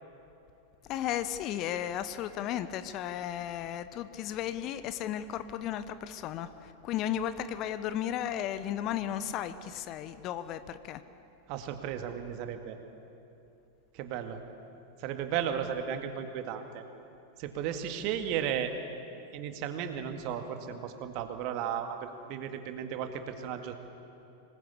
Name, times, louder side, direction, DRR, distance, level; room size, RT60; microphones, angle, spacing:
voice 1, 0.9-11.0, left 10 dB, 35° left, 13 dB, 0.9 m, -34 dB
voice 2, 11.5-12.8 13.9-14.4 15.0-16.8 17.4-18.7 19.3-23.7, right 9 dB, 45° right, 7 dB, 2.1 m, -35 dB
25.5 x 20.0 x 8.6 m, 2.8 s
figure-of-eight pair, 90°, 0 cm